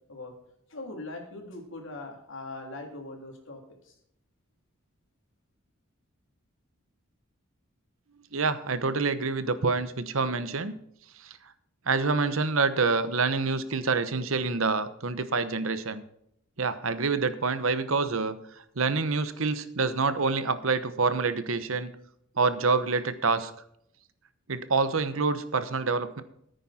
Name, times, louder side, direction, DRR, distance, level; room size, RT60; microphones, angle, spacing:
voice 1, 0.7-3.9, left 2 dB, 65° left, 2 dB, 3.4 m, -41 dB
voice 2, 8.3-10.7 11.2-11.4 11.9-16.0 16.6-18.4 18.8-21.9 22.4-23.5 24.5-26.2, right 4 dB, 75° right, 12 dB, 1.1 m, -27 dB
14.5 x 9.2 x 4.3 m, 0.73 s
head